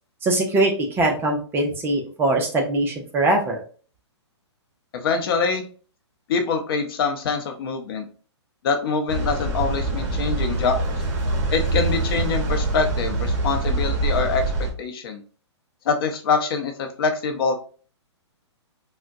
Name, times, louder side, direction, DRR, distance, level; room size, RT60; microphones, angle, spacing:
voice 1, 0.2-3.6, right 2 dB, 15° right, 1 dB, 0.5 m, -22 dB
voice 2, 4.9-5.6 6.3-8.1 8.6-10.9 11.5-14.5 14.8-15.2 15.9-17.5, left 5 dB, 50° left, 5 dB, 0.7 m, -24 dB
sound 1, 9.1-14.7, right 2 dB, 45° right, 1.0 m, -24 dB
3.6 x 2.1 x 2.5 m, 0.40 s
hypercardioid pair, 130°, 15 cm